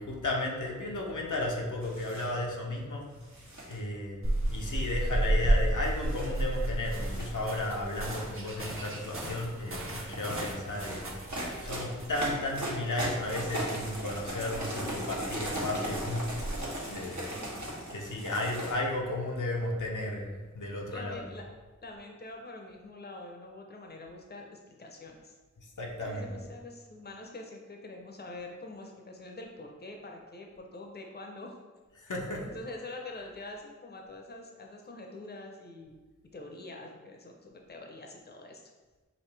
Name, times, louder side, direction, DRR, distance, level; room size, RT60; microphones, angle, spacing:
voice 1, 0.0-3.1 3.7-17.3 17.9-21.3 25.6-26.3 31.9-32.5, left 1 dB, 80° left, -1 dB, 0.7 m, -34 dB
sound 1, 1.8-2.3 3.2-3.8 4.5-5.2 6.0-6.3 6.8-7.3 7.8-8.3 8.8-9.3 10.0-18.7, right 1 dB, 70° right, 1.1 m, -38 dB
sound 2, 4.2-16.7, right 1 dB, 45° right, 0.8 m, -34 dB
voice 2, 20.9-21.5 21.8-25.3 26.0-31.5 32.4-36.0 36.3-38.6, left 2 dB, 35° left, 2 dB, 0.6 m, -45 dB
5.1 x 2.5 x 3.3 m, 1.3 s
wide cardioid pair, 45°, 30 cm